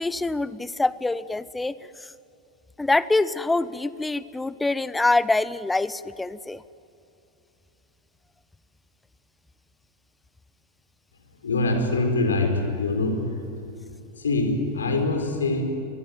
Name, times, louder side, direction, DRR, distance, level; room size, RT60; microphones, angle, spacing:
voice 1, 0.0-1.7 2.0-2.1 2.8-6.6, left 2 dB, 10° left, 18 dB, 0.7 m, -25 dB
voice 2, 11.4-13.4 14.2-15.6, left 2 dB, 70° left, 5 dB, 4.4 m, -24 dB
24.5 x 22.0 x 9.6 m, 2.7 s
figure-of-eight pair, 90°, 0 cm